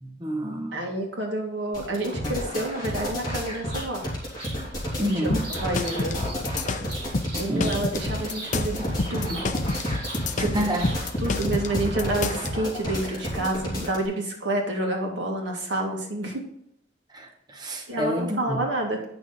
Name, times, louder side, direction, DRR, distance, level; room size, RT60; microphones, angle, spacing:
voice 1, 0.0-0.8 5.0-5.4 7.4-7.7 10.4-10.9 17.1-18.6, equal, 20° right, 2 dB, 0.9 m, -28 dB
voice 2, 0.7-4.1 5.0-6.2 7.4-9.4 10.3-10.6 11.2-16.5 17.9-19.1, right 1 dB, 80° right, 1 dB, 2.1 m, -29 dB
sound 1, 1.7-14.1, equal, 20° left, 2.8 m, -31 dB
Bird vocalization bird call bird song, 2.8-11.2, right 2 dB, 55° right, 3.4 m, -42 dB
sound 2, 5.3-12.5, left 3 dB, 40° left, 0.6 m, -29 dB
9.0 x 6.2 x 4.1 m, 0.74 s
head